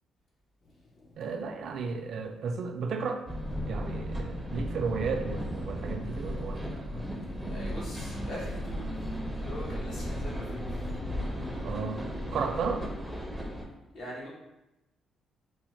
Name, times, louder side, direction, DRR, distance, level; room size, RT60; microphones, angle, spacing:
Thunder, 0.6-13.2, left 3 dB, 45° left, 0.6 m, -47 dB
voice 1, 1.2-3.2 3.6-7.0 11.6-12.0 12.3-12.9, right 5 dB, 65° right, 6 dB, 0.3 m, -34 dB
sound 1, 3.3-13.7, equal, 5° right, 0.5 m, -35 dB
voice 2, 7.5-9.0 9.3-10.9 13.9-14.3, equal, 65° left, -5 dB, 1.1 m, -42 dB
4.1 x 2.0 x 3.0 m, 0.97 s
cardioid pair, 90°, 0 cm